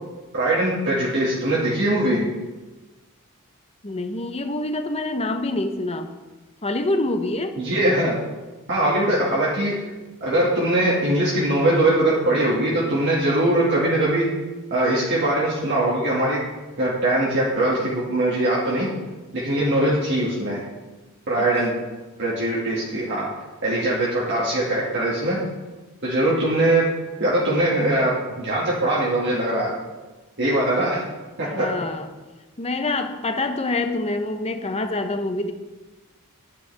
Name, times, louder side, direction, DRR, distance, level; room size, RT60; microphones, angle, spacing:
voice 1, 0.3-2.2 7.6-8.2 8.7-9.7 10.2-14.3 14.7-16.4 16.8-18.9 19.3-20.6 21.3-21.7 22.2-23.3 23.6-25.4 26.0-26.8 27.2-28.1 28.4-29.7 30.4-31.0 31.4-31.7, right 1 dB, 55° right, -6 dB, 2.0 m, -21 dB
voice 2, 3.8-6.1 6.6-7.6 21.4-21.5 31.5-32.1 32.6-35.5, left 2 dB, 30° left, 7 dB, 0.8 m, -26 dB
12.5 x 9.6 x 3.5 m, 1.2 s
head